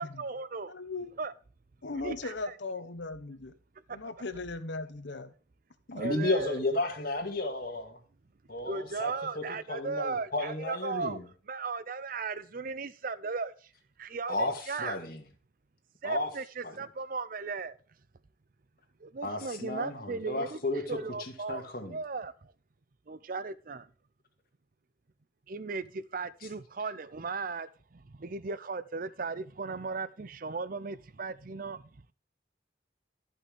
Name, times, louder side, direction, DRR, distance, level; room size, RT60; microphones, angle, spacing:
voice 1, 0.0-0.8 1.2-1.3 2.0-2.3 3.9-4.0 6.0-6.6 8.7-11.2 11.5-13.5 14.0-15.0 16.0-17.8 19.0-20.6 20.9-22.5 23.1-23.9 25.5-32.0, right 4 dB, 50° right, 0.6 m, -36 dB
voice 2, 0.7-1.1 1.8-3.5 3.9-5.3 5.9-6.1, left 3 dB, 70° left, 1.1 m, -38 dB
voice 3, 5.9-8.0 8.5-9.4 9.7-11.2 14.3-15.2 16.0-16.3 16.6-16.8 19.2-22.0, left 2 dB, 50° left, 2.0 m, -33 dB
14.0 x 5.6 x 3.5 m
head